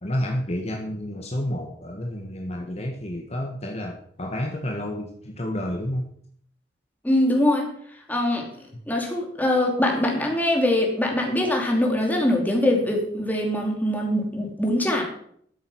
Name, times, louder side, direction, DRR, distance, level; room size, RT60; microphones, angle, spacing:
voice 1, 0.0-6.1, left 1 dB, 35° left, 0 dB, 1.5 m, -30 dB
voice 2, 7.0-7.7 8.1-8.5 8.9-15.0, left 1 dB, 10° left, 0 dB, 2.7 m, -23 dB
13.0 x 7.6 x 6.2 m, 0.65 s
head